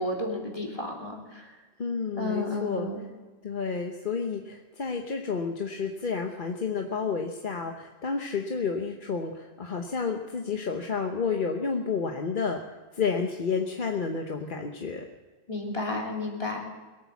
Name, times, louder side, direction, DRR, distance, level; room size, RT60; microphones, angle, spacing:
voice 1, 0.0-1.5 2.2-3.0 15.5-16.6, left 2 dB, 30° left, -1 dB, 3.0 m, -32 dB
voice 2, 1.8-2.9 3.4-12.6 12.9-15.0, left 5 dB, 50° left, 3 dB, 1.1 m, -30 dB
22.0 x 8.8 x 7.1 m, 1.3 s
omnidirectional pair, 1.1 m